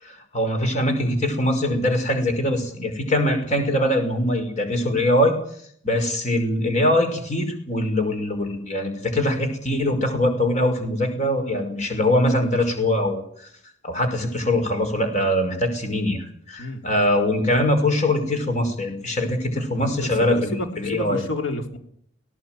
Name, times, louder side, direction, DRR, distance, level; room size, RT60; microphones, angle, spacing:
voice 1, 0.0-5.3 5.8-13.2 13.8-21.2, left 1 dB, 35° left, 6 dB, 5.6 m, -22 dB
voice 2, 19.5-21.8, left 2 dB, 75° left, 5 dB, 3.7 m, -31 dB
18.5 x 18.0 x 9.3 m, 0.64 s
head